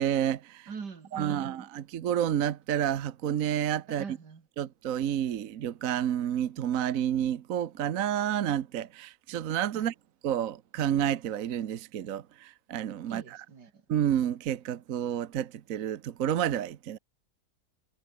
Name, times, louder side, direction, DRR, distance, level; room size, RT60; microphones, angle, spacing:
voice 1, 0.0-0.7 1.1-4.0 4.6-9.9 10.2-13.4 13.9-17.0, right 10 dB, 60° right, 1.2 m, -30 dB
voice 2, 0.7-1.7 4.0-4.4 9.7-9.8 13.1-13.8, right 5 dB, 85° right, 3.0 m, -43 dB
omnidirectional pair, 1.7 m